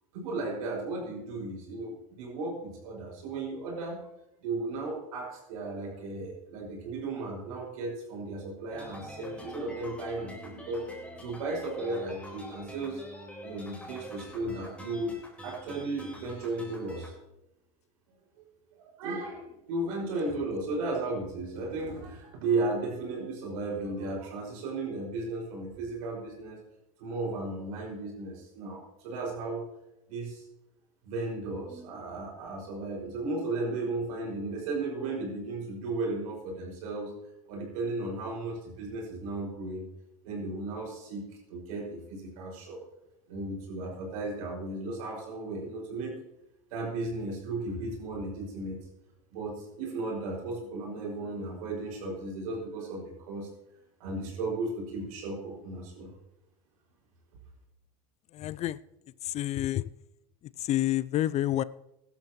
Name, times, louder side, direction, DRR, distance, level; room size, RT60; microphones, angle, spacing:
voice 1, 0.1-4.0 4.4-10.8 11.2-13.0 13.4-15.2 15.4-17.1 18.7-26.6 27.0-29.6 30.1-30.4 31.0-37.1 37.5-39.8 40.2-42.8 43.3-46.2 46.7-48.8 49.3-53.5 54.0-56.1, right 2 dB, 80° right, -1 dB, 5.9 m, -35 dB
sound 1, 8.7-17.1, left 1 dB, 5° left, 4.4 m, -45 dB
voice 2, 58.3-58.8 59.2-59.9 60.6-61.6, left 13 dB, 40° left, 19 dB, 0.4 m, -28 dB
17.0 x 12.0 x 3.1 m, 0.88 s
supercardioid pair, 100°, 18 cm